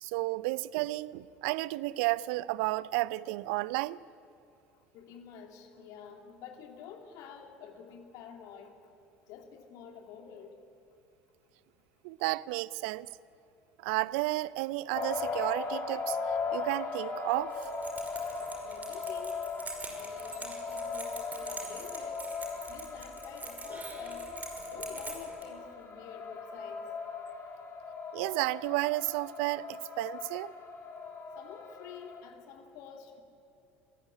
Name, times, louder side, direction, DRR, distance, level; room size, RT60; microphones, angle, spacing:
voice 1, 0.0-4.0 12.0-13.1 13.8-16.2 16.5-17.6 28.1-30.5, right 20 dB, 65° right, 21 dB, 0.5 m, -32 dB
voice 2, 4.9-8.7 9.3-10.5 18.6-19.4 19.8-22.2 22.7-24.2 24.7-26.8 31.3-33.2, left 7 dB, 60° left, 5 dB, 2.7 m, -49 dB
sound 1, 14.9-32.2, left 4 dB, 40° left, 4.5 m, -38 dB
Keys jangling, 17.5-25.5, right 3 dB, 25° right, 5.4 m, -45 dB
27.5 x 15.5 x 9.9 m, 2.6 s
figure-of-eight pair, 65°, 7 cm